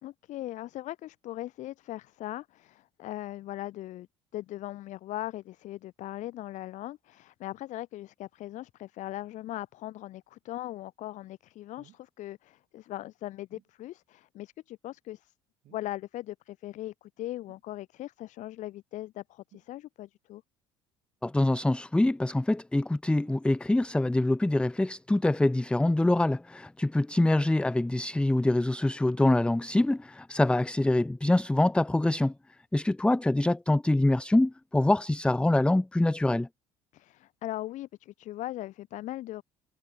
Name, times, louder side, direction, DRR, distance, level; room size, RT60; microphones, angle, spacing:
voice 1, 0.0-4.1 4.3-15.3 15.7-20.4 36.9-39.4, left 15 dB, 60° left, 3.8 m, -39 dB
sound 1, 11.8-12.1 13.5-13.8 15.6-16.0 17.5-17.7 19.5-19.8 21.4-21.7 23.2-23.5 25.2-25.4 27.1-27.7 29.2-29.5 30.3-30.4, right 16 dB, 60° right, 7.3 m, -61 dB
voice 2, 21.2-32.3 32.7-36.5, left 1 dB, 5° left, 0.8 m, -25 dB
hypercardioid pair, 60°, 14 cm